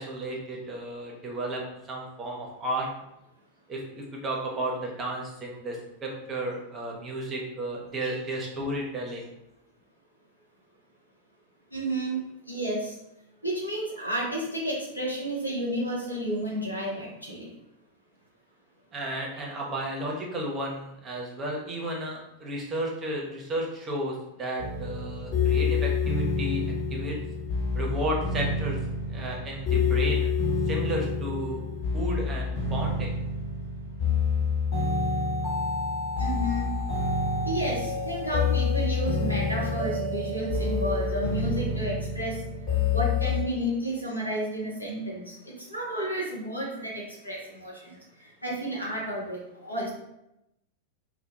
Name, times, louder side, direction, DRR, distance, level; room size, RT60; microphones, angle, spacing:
voice 1, 0.0-1.6 1.9-2.9 3.7-9.2 18.9-26.6 26.9-27.2 27.7-28.8 29.1-30.3 30.7-31.6 31.9-33.1, right 1 dB, 25° right, -1 dB, 0.6 m, -33 dB
voice 2, 11.7-12.2 12.5-13.0 13.4-17.5 36.2-36.7 37.4-42.4 42.9-49.9, right 1 dB, 85° left, -4 dB, 0.7 m, -31 dB
sound 1, 24.6-43.4, left 4 dB, 40° left, 0.9 m, -28 dB
2.2 x 2.0 x 2.8 m, 0.86 s
figure-of-eight pair, 90°, 0 cm